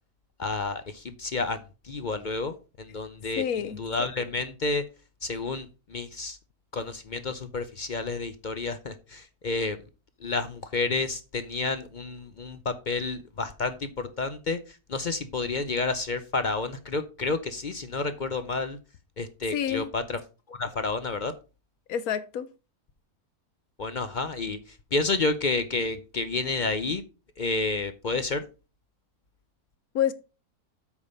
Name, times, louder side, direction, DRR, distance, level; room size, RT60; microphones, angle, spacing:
voice 1, 0.4-3.4 3.8-4.8 5.2-6.4 6.7-9.8 10.2-18.8 19.2-20.2 20.5-21.3 23.8-27.0 27.4-28.4, left 3 dB, 45° left, 0.6 m, -30 dB
voice 2, 3.4-3.8 19.5-19.9 21.9-22.5 29.9-30.1, left 9 dB, 75° left, 1.2 m, -27 dB
8.2 x 5.2 x 5.4 m
omnidirectional pair, 1.6 m